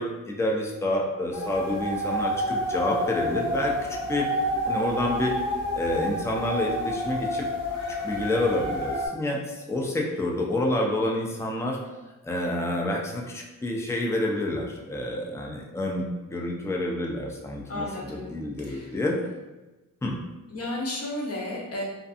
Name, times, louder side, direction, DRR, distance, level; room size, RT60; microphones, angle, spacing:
voice 1, 0.0-4.3 4.7-5.3 5.8-7.4 7.9-11.8 12.2-19.2 20.0-20.2, left 1 dB, 10° left, -1 dB, 0.3 m, -28 dB
sound 1, 1.3-9.1, equal, 85° left, 1.1 m, -29 dB
voice 2, 17.7-19.0 20.5-21.8, left 1 dB, 45° left, -2 dB, 0.6 m, -33 dB
2.5 x 2.4 x 2.4 m, 1.1 s
wide cardioid pair, 120°, 34 cm